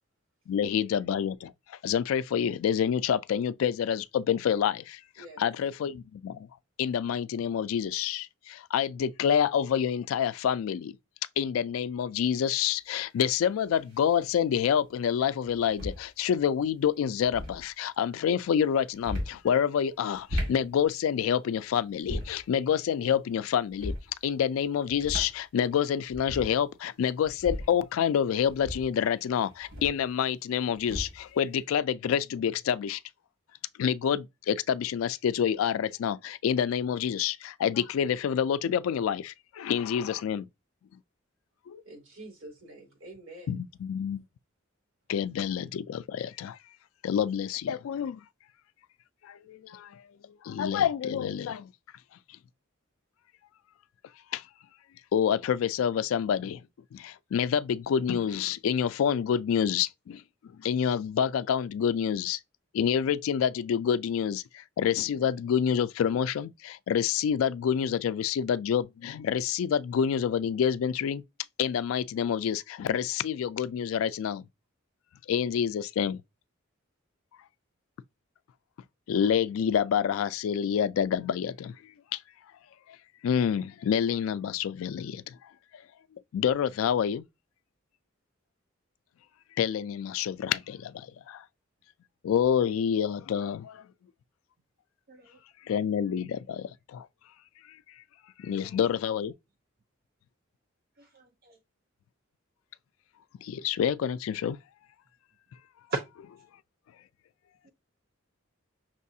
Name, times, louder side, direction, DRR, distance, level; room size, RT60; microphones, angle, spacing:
voice 1, 0.5-1.5 1.8-5.0 5.4-6.5 6.8-10.9 11.4-23.9 24.2-33.0 33.8-40.5 41.7-41.8 43.5-44.2 45.1-46.6 47.0-48.2 49.2-50.0 50.4-51.7 54.3-54.4 55.1-56.6 56.9-60.2 60.6-62.4 62.7-71.2 71.6-74.4 75.3-76.2 79.1-81.7 82.1-82.2 83.2-85.3 85.7-85.8 86.3-87.2 89.6-91.4 92.2-93.8 95.7-97.1 98.4-99.3 103.4-104.6, left 8 dB, 80° left, 0.3 m, -27 dB
voice 2, 5.2-5.5 41.8-43.6, right 1 dB, 70° right, 2.6 m, -47 dB
sound 1, 12.2-12.3 13.8-14.2 15.4-16.1 17.1-17.6 18.9-19.4 20.1-20.6 21.9-22.5 23.7-24.1 24.9-25.4 25.7-25.8 26.1-26.6 27.3-27.8 28.5-30.1 30.8-31.3, left 1 dB, 90° right, 2.0 m, -36 dB
voice 3, 95.1-95.4 98.5-98.8 101.0-101.6 107.6-107.7, right 2 dB, 50° right, 0.5 m, -57 dB
5.9 x 2.4 x 2.7 m
head